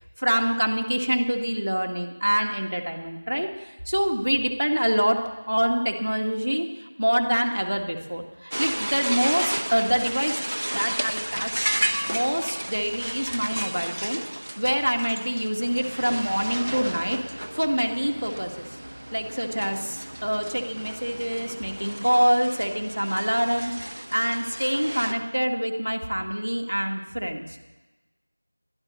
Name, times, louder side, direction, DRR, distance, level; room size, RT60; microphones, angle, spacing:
voice 1, 0.2-10.3 10.7-17.2 17.5-18.5 19.1-27.6, equal, 80° right, 3 dB, 1.9 m, -26 dB
sound 1, 8.5-25.1, right 1 dB, 50° right, 1.0 m, -33 dB
21.5 x 12.5 x 4.2 m, 1.2 s
figure-of-eight pair, 175°, 0 cm